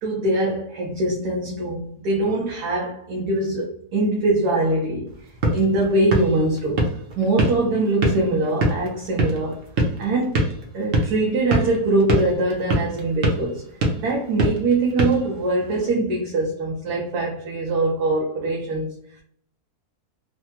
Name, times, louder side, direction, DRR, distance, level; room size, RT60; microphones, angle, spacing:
voice 1, 0.0-6.9 7.2-9.6 10.0-13.6 14.0-19.2, right 2 dB, 85° right, 1.2 m, -23 dB
sound 1, 5.1-15.9, right 1 dB, 60° right, 1.0 m, -26 dB
3.2 x 2.1 x 2.9 m
omnidirectional pair, 1.6 m